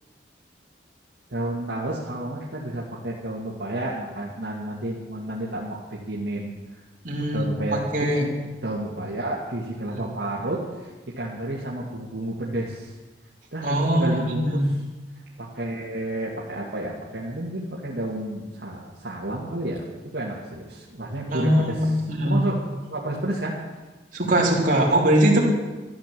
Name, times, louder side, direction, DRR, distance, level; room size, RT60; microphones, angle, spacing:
voice 1, 1.3-6.8 7.3-8.4 8.6-10.6 11.2-12.9 13.5-14.7 15.4-19.8 20.1-22.0 22.2-22.6 22.9-23.5, right 1 dB, 65° right, -5 dB, 2.1 m, -31 dB
voice 2, 7.0-8.2 9.9-10.0 13.6-14.7 21.3-22.5 24.1-25.5, right 1 dB, 45° right, -3 dB, 3.6 m, -22 dB
13.5 x 11.0 x 7.6 m, 1.2 s
head